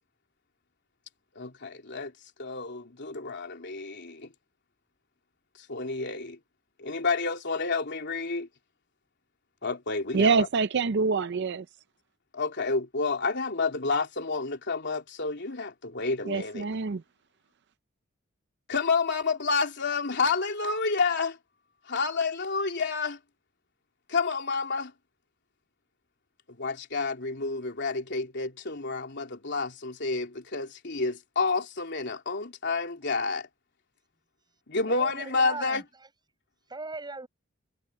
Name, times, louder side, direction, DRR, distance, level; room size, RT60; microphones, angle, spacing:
voice 1, 1.4-2.1 2.4-4.3 5.7-6.4 6.8-8.5 9.6-10.5 12.3-16.7 18.7-21.4 21.9-23.2 24.1-24.9 26.5-33.5 34.7-35.8, left 4 dB, 60° left, 3.4 m, -29 dB
voice 2, 10.1-11.7 16.3-17.0, right 4 dB, 60° right, 0.5 m, -25 dB
voice 3, 34.9-35.8 36.7-37.3, right 3 dB, 20° right, 6.3 m, -38 dB
head